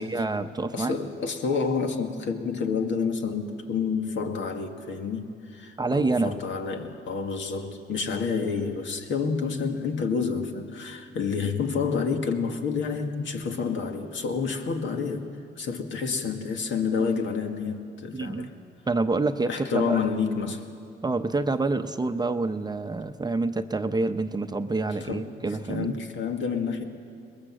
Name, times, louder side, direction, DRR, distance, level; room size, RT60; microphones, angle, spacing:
voice 1, 0.0-1.0 5.8-6.4 18.1-18.5 18.9-20.1 21.0-26.0, right 3 dB, 20° right, 8 dB, 0.7 m, -27 dB
voice 2, 0.7-15.3 15.6-18.5 19.5-20.6 25.0-26.8, left 5 dB, 70° left, 4 dB, 2.0 m, -29 dB
23.0 x 21.0 x 7.6 m, 2.4 s
cardioid pair, 90°, 20 cm